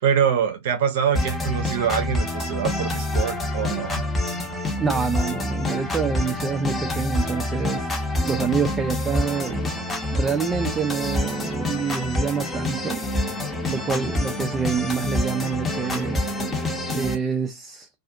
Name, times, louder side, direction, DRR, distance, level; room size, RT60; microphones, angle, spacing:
voice 1, 0.0-4.0, right 8 dB, 55° right, 0.7 m, -24 dB
sound 1, 1.1-17.1, left 1 dB, 15° left, 0.7 m, -27 dB
voice 2, 4.8-9.7 10.1-13.0 13.6-16.2 16.9-17.9, right 6 dB, 15° right, 0.4 m, -27 dB
2.4 x 2.4 x 2.5 m
figure-of-eight pair, 90°, 0 cm